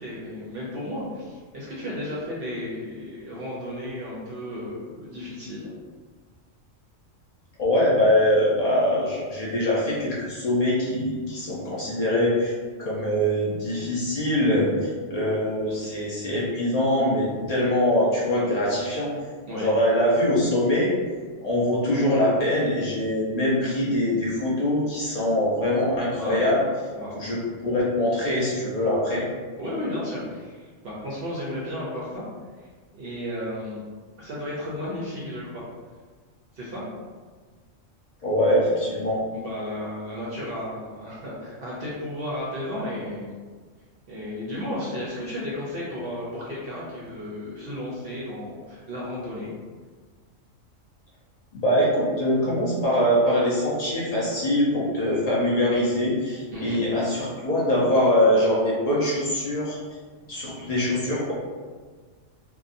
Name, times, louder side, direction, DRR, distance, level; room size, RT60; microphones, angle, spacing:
voice 1, 0.0-5.7 19.5-19.7 26.1-26.5 26.9-27.2 29.6-32.2 32.6-32.7 32.9-33.8 34.2-35.6 36.5-36.8 39.4-43.3 44.1-49.5 56.5-56.8, left 1 dB, 60° right, -6 dB, 0.6 m, -33 dB
voice 2, 7.6-12.5 12.8-19.1 19.5-20.9 21.4-26.6 27.1-29.2 38.2-39.2 51.5-59.8 60.3-61.3, left 1 dB, 55° left, -6 dB, 0.4 m, -23 dB
2.7 x 2.2 x 2.5 m, 1.5 s
omnidirectional pair, 1.4 m